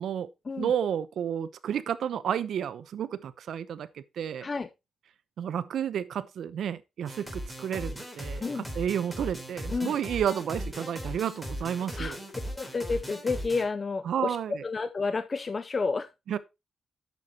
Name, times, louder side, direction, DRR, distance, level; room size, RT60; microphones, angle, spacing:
voice 1, 0.6-4.5 5.4-12.2 14.0-14.6 16.3-16.4, right 9 dB, 75° right, 0.8 m, -31 dB
sound 1, 7.1-13.6, equal, ahead, 3.3 m, -38 dB
voice 2, 12.6-16.1, left 4 dB, 30° left, 0.6 m, -30 dB
11.0 x 8.1 x 2.9 m
wide cardioid pair, 135°, 0 cm